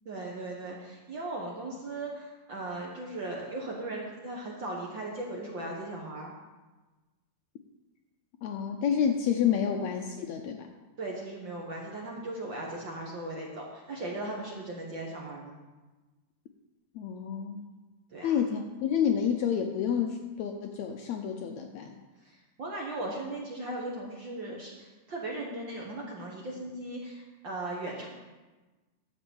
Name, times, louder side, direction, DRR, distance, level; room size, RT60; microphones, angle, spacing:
voice 1, 0.0-6.3 11.0-15.6 18.1-18.3 22.2-28.1, right 2 dB, 55° right, -2 dB, 1.3 m, -38 dB
voice 2, 8.4-10.7 16.9-17.7 18.2-22.0, left 8 dB, 80° left, 4 dB, 1.6 m, -29 dB
11.5 x 6.1 x 7.0 m, 1.2 s
omnidirectional pair, 3.9 m